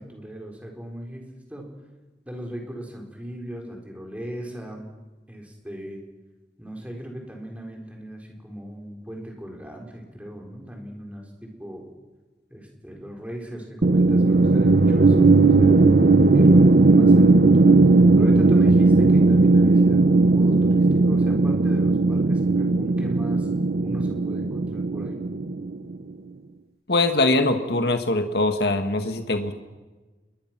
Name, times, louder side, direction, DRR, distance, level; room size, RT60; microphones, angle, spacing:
voice 1, 0.0-1.7 2.3-4.9 5.3-6.0 6.6-11.9 12.5-15.8 16.3-17.8 18.2-23.5 23.8-25.2, equal, 10° right, 1 dB, 4.3 m, -38 dB
sound 1, 13.8-26.0, right 3 dB, 55° right, 0.6 m, -17 dB
voice 2, 26.9-29.5, left 2 dB, 65° left, 6 dB, 1.7 m, -22 dB
27.5 x 22.0 x 6.1 m, 1.2 s
head